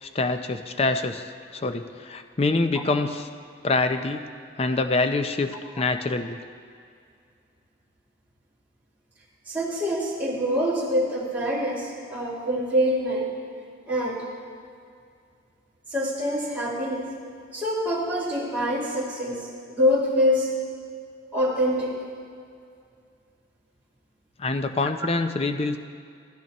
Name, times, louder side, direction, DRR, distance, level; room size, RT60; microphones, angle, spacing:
voice 1, 0.0-1.2 1.5-3.3 3.6-4.3 4.6-6.4 24.4-25.8, left 3 dB, 35° left, 8 dB, 0.5 m, -25 dB
voice 2, 9.5-13.3 13.9-14.2 15.9-17.1 17.5-20.5 21.3-22.0 24.8-25.0, equal, 10° right, -8 dB, 2.5 m, -25 dB
15.5 x 13.5 x 3.0 m, 2.3 s
head